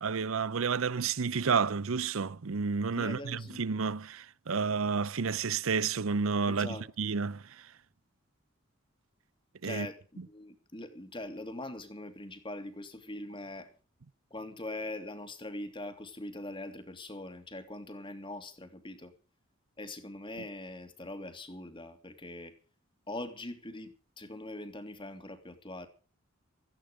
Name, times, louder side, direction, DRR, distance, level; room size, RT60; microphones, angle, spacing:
voice 1, 0.0-7.7 9.6-9.9, right 5 dB, 85° right, 0.7 m, -31 dB
voice 2, 2.9-3.6 6.5-6.8 9.6-13.7 14.3-19.1 19.8-22.5 23.1-25.9, left 1 dB, 25° left, 2.9 m, -42 dB
17.5 x 15.0 x 5.2 m
head